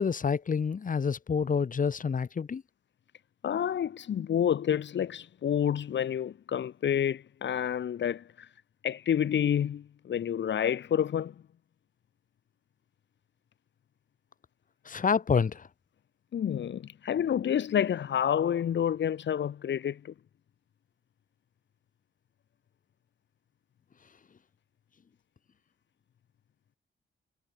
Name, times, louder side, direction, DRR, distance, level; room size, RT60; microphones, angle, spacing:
voice 1, 0.0-2.6 14.9-15.6, left 6 dB, 45° left, 7.4 m, -28 dB
voice 2, 3.4-8.5 8.8-11.3 16.3-20.1, left 9 dB, 75° left, 5.6 m, -29 dB
wide cardioid pair, 135°, 19 cm